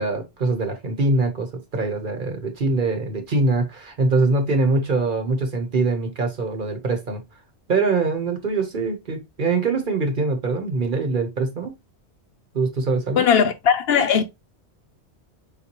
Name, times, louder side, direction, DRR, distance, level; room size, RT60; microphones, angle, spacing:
voice 1, 0.0-7.2 7.7-11.7 12.5-13.3, right 3 dB, 50° right, 1.1 m, -23 dB
voice 2, 13.2-14.3, left 7 dB, 70° left, 0.8 m, -18 dB
4.2 x 3.8 x 2.8 m
omnidirectional pair, 1.1 m